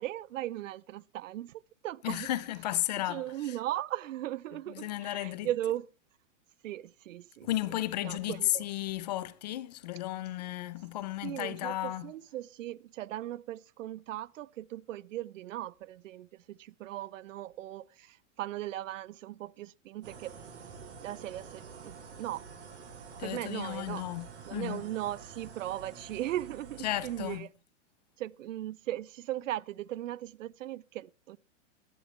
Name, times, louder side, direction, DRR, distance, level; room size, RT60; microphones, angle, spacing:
voice 1, 0.0-2.3 3.1-5.9 6.6-7.5 8.0-8.6 11.2-20.4 21.0-22.4 23.2-24.1 24.5-27.5 28.2-31.4, right 14 dB, 80° right, 0.6 m, -38 dB
voice 2, 2.0-3.2 4.7-5.5 7.4-12.1 23.2-24.8 26.8-27.5, left 15 dB, 35° left, 0.5 m, -34 dB
sound 1, 20.0-27.4, right 5 dB, 65° right, 6.3 m, -48 dB
16.0 x 11.0 x 3.3 m
supercardioid pair, 170°, 37 cm